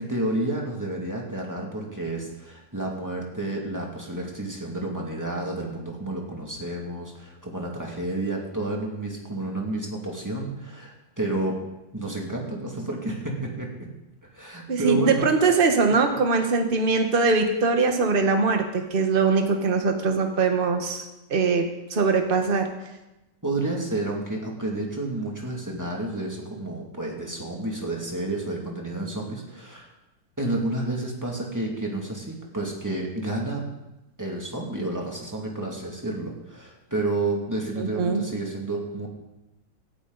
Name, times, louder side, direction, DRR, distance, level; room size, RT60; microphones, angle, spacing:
voice 1, 0.0-11.6 11.9-13.9 14.3-15.3 23.4-29.9 30.4-33.6 34.2-39.1, right 2 dB, 10° right, -1 dB, 2.3 m, -30 dB
voice 2, 14.7-21.6 21.9-22.7 37.8-38.2, right 4 dB, 30° right, 4 dB, 1.4 m, -22 dB
18.0 x 12.0 x 4.1 m, 0.98 s
omnidirectional pair, 2.0 m